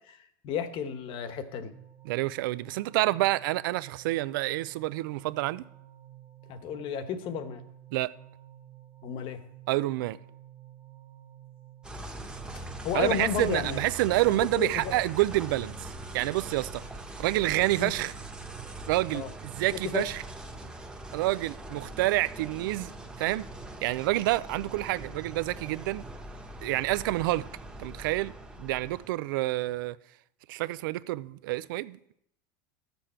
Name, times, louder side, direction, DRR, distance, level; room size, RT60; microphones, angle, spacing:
voice 1, 0.1-1.7 6.5-7.6 9.0-9.4 12.8-13.8 14.3-14.9 17.8-17.9 19.1-19.3 19.8-20.1, left 7 dB, 50° left, 1.2 m, -33 dB
sound 1, 1.7-14.4, right 12 dB, 25° right, 1.4 m, -52 dB
voice 2, 2.0-5.6 7.9-8.1 9.7-10.2 12.9-16.8 17.2-18.1 18.9-20.2 21.1-22.9 23.2-23.5 23.8-26.0 26.6-27.4 27.8-28.3 28.6-30.0 30.5-32.2, right 18 dB, 80° right, 0.5 m, -28 dB
sound 2, 11.8-29.1, right 1 dB, 10° right, 1.1 m, -42 dB
12.5 x 7.1 x 4.4 m
supercardioid pair, 115°, 11 cm